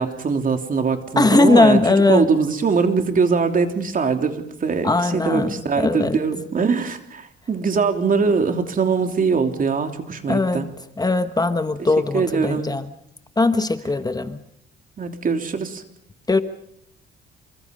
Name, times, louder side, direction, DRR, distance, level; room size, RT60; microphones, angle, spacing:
voice 1, 0.0-1.8 2.1-10.7 11.8-12.7 15.0-15.8, right 5 dB, 45° right, 3.3 m, -22 dB
voice 2, 1.2-2.3 4.8-6.2 10.3-10.7 11.0-12.9 13.4-14.4 16.3-16.4, left 3 dB, 20° left, 1.3 m, -19 dB
28.0 x 25.0 x 5.4 m
cardioid pair, 90°, 20 cm